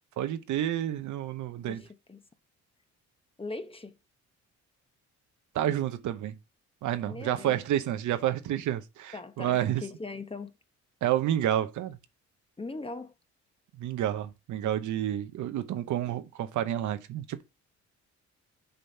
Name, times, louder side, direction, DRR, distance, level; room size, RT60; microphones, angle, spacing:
voice 1, 0.2-1.8 5.5-6.3 6.8-9.8 11.0-12.0 13.8-17.4, right 12 dB, 75° right, 0.8 m, -29 dB
voice 2, 1.7-2.2 3.4-4.0 7.1-7.6 9.1-10.5 12.6-13.1, left 3 dB, 20° left, 0.8 m, -40 dB
6.9 x 4.0 x 4.4 m
cardioid pair, 90°, 30 cm